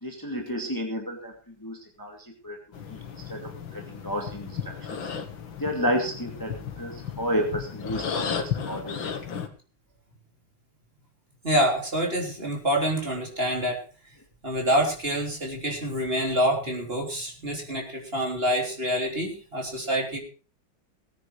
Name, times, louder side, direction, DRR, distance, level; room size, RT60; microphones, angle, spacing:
voice 1, 0.0-2.2 2.4-2.6 2.9-3.0 3.3-5.1 5.6-9.2, equal, 10° left, 2 dB, 2.3 m, -31 dB
sound 1, 2.7-9.5, left 7 dB, 85° left, 2.4 m, -34 dB
voice 2, 11.4-13.8 14.4-20.2, equal, 30° right, 1 dB, 3.8 m, -26 dB
18.5 x 9.8 x 4.7 m, 0.35 s
omnidirectional pair, 2.1 m